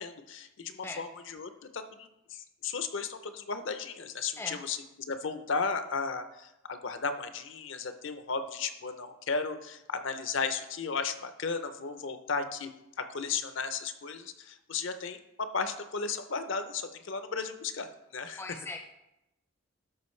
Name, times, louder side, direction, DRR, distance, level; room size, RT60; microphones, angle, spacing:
voice 1, 0.0-4.8 5.1-12.7 13.0-17.9 18.1-18.4, left 5 dB, 60° left, 9 dB, 0.6 m, -35 dB
voice 2, 18.4-18.8, left 2 dB, 10° left, 4 dB, 0.4 m, -39 dB
12.5 x 5.0 x 3.2 m, 0.90 s
head